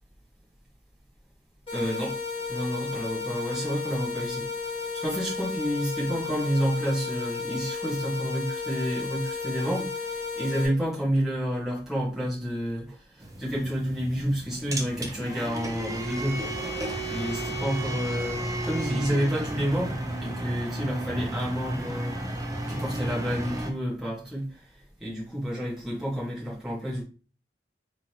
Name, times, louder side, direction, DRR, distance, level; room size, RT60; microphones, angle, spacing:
sound 1, 1.7-10.7, left 4 dB, 30° left, 2.0 m, -33 dB
voice 1, 1.7-2.2 2.5-4.5 4.8-16.5 17.1-22.4 22.7-24.7 25.0-27.0, equal, ahead, -8 dB, 1.4 m, -30 dB
sound 2, 13.2-23.7, right 1 dB, 20° right, 0.6 m, -33 dB
3.7 x 3.2 x 3.0 m, 0.36 s
head